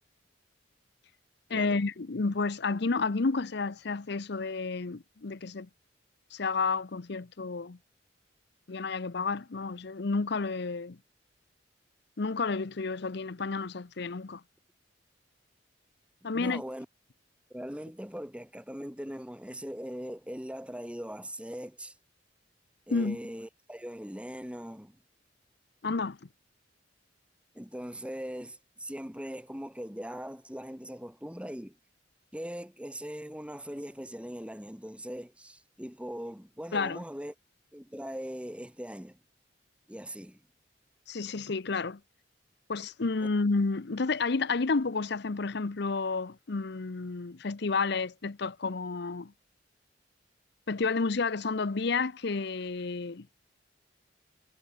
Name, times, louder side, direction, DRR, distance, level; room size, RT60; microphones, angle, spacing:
voice 1, 1.5-5.7 6.3-7.8 8.7-11.0 12.2-14.4 16.2-16.6 22.9-23.2 25.8-26.2 36.7-37.0 41.1-42.0 42.7-49.3 50.7-53.3, left 4 dB, 60° left, 0.7 m, -31 dB
voice 2, 16.2-16.9 17.5-21.9 22.9-25.0 27.5-31.8 32.3-37.3 37.7-39.2 39.9-40.4 43.2-43.3, equal, 5° right, 4.3 m, -40 dB
head